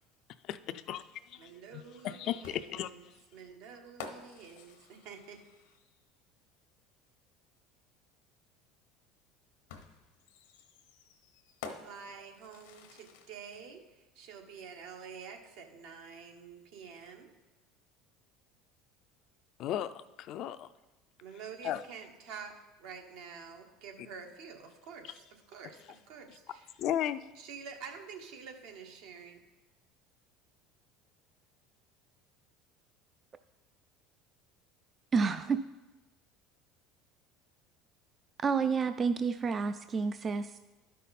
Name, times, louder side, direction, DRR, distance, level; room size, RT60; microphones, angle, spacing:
voice 1, 0.4-3.2 19.6-20.7 21.6-21.8 26.8-27.3, left 11 dB, 55° left, 12 dB, 0.4 m, -36 dB
voice 2, 1.4-3.1 3.3-5.4 11.6-17.3 21.2-26.7 27.4-29.4, right 6 dB, 75° right, 3 dB, 1.3 m, -48 dB
sound 1, 2.4-6.1 7.6-7.7 9.7-13.6, left 5 dB, 90° left, 1.0 m, -50 dB
voice 3, 35.1-35.6 38.4-40.6, right 5 dB, 30° right, 10 dB, 0.3 m, -29 dB
12.0 x 5.5 x 4.2 m, 1.1 s
supercardioid pair, 110°, 0 cm